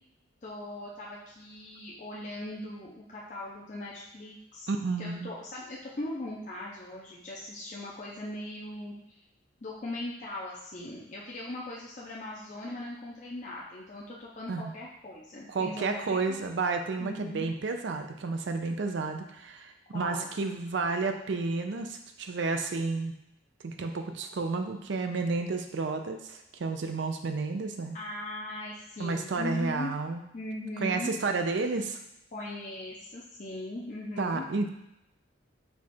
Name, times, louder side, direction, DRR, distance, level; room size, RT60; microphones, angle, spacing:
voice 1, 0.4-4.7 5.0-9.0 9.6-16.4 17.0-17.5 19.9-20.3 27.9-29.9 30.3-31.1 32.3-34.5, left 1 dB, 40° left, -5 dB, 0.6 m, -39 dB
voice 2, 4.7-5.3 14.5-14.7 15.5-23.1 23.6-28.0 29.0-30.2 30.8-32.0 34.2-34.7, right 3 dB, 65° right, 6 dB, 0.5 m, -31 dB
4.6 x 2.4 x 4.2 m, 0.86 s
head